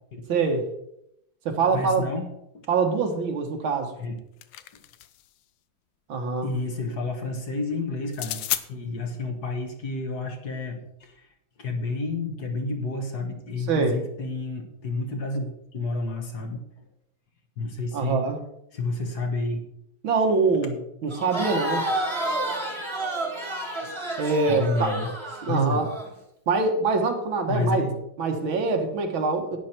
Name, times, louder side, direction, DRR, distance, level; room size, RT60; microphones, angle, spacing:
voice 1, 0.3-0.7 1.5-2.1 2.7-3.9 6.1-6.5 13.7-14.0 17.9-18.4 20.0-21.9 24.2-24.9 25.4-25.9 26.5-27.8 28.2-29.6, right 4 dB, 80° right, 4 dB, 2.3 m, -24 dB
voice 2, 1.7-2.3 4.0-4.2 6.4-8.4 8.7-11.2 11.6-16.6 17.6-18.2 18.7-19.6 24.5-25.1 25.5-25.8 27.5-28.0, left 3 dB, 55° left, 4 dB, 2.0 m, -30 dB
sound 1, 4.0-5.3 8.1-8.7, left 13 dB, 75° left, 1.3 m, -32 dB
Crowd, 21.1-26.1, right 1 dB, 15° right, 1.5 m, -30 dB
11.5 x 9.4 x 4.5 m, 0.79 s
omnidirectional pair, 2.2 m